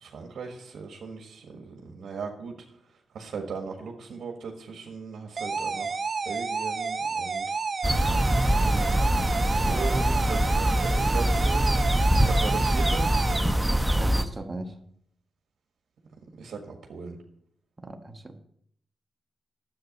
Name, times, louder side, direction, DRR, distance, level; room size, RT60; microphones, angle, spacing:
voice 1, 0.0-2.5 3.1-5.9 6.2-7.4 8.5-9.0 9.3-11.7 12.3-13.1 16.4-17.2, right 5 dB, 70° right, 2 dB, 1.6 m, -38 dB
sound 1, 5.4-13.4, right 4 dB, 45° right, 0.7 m, -30 dB
sound 2, 7.8-14.2, equal, 10° right, 0.9 m, -23 dB
voice 2, 13.9-14.7 17.8-18.4, right 2 dB, 25° right, 5 dB, 1.3 m, -38 dB
10.5 x 8.0 x 5.3 m, 0.69 s
cardioid pair, 75°, 0 cm